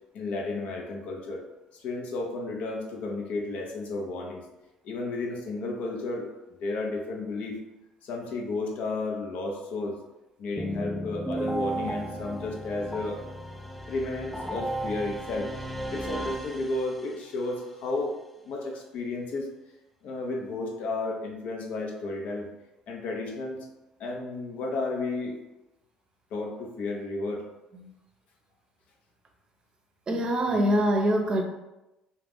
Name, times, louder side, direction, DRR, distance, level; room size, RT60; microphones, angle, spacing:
voice 1, 0.1-1.4 1.8-4.4 4.8-6.3 6.6-7.6 8.0-10.0 10.4-13.2 13.9-15.5 15.9-18.2 18.4-19.5 20.0-22.5 22.9-23.6 24.0-25.4 26.3-27.4, left 2 dB, 65° left, 1 dB, 0.6 m, -32 dB
sound 1, 10.6-17.3, right 1 dB, 5° left, 0.4 m, -34 dB
voice 2, 30.1-31.4, equal, 35° right, 3 dB, 0.6 m, -24 dB
2.4 x 2.1 x 3.5 m, 0.94 s
supercardioid pair, 65°, 3 cm